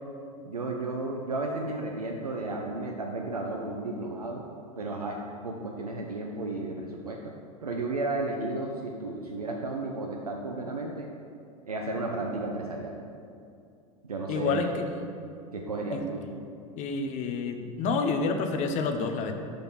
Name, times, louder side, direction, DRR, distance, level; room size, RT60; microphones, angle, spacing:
voice 1, 0.4-4.4 4.8-7.3 7.6-11.1 11.7-13.0 14.0-14.8 15.5-16.3, right 2 dB, 90° right, 0 dB, 0.5 m, -33 dB
voice 2, 14.3-14.7 15.9-16.0 16.8-19.3, left 4 dB, 40° left, 6 dB, 0.6 m, -28 dB
5.6 x 3.8 x 5.9 m, 2.4 s
figure-of-eight pair, 85°, 19 cm